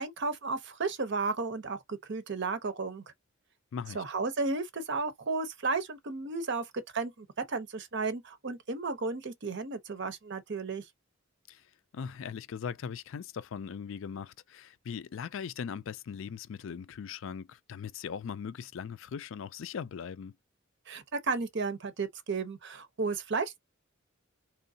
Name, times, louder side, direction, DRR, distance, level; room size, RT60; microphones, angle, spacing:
voice 1, 0.0-3.0 3.9-6.7 6.9-10.8 20.9-23.6, right 4 dB, 60° right, 0.8 m, -33 dB
voice 2, 3.7-4.0 11.5-11.6 11.9-20.3, left 7 dB, 70° left, 0.4 m, -39 dB
3.7 x 3.0 x 2.7 m
head